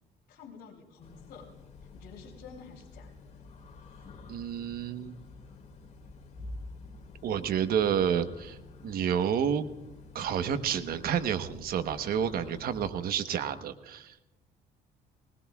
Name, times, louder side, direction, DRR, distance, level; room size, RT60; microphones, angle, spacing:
voice 1, 0.3-1.5 1.9-3.3, left 6 dB, 70° left, -4 dB, 3.3 m, -50 dB
sound 1, 1.0-12.9, left 3 dB, 45° left, 3.8 m, -49 dB
voice 2, 4.3-5.2 7.2-8.6 8.8-9.6 10.1-14.2, right 8 dB, 60° right, 9 dB, 1.1 m, -29 dB
20.5 x 19.5 x 2.4 m, 0.99 s
cardioid pair, 110°, 17 cm